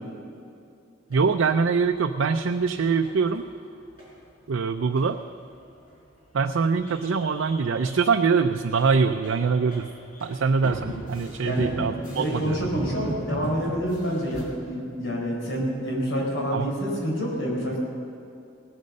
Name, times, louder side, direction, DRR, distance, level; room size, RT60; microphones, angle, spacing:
sound 1, 1.1-3.6 4.0-4.1 4.4-4.5 4.7-5.0 5.3-5.4 5.6-6.4 6.7-14.4, equal, 45° left, 4.6 m, -37 dB
voice 1, 1.1-3.4 4.5-5.2 6.3-9.9 10.2-12.8 16.5-16.7, right 5 dB, 85° right, 6 dB, 0.5 m, -23 dB
voice 2, 11.4-17.8, equal, 70° left, -2 dB, 4.6 m, -28 dB
18.5 x 9.4 x 6.5 m, 2.6 s
head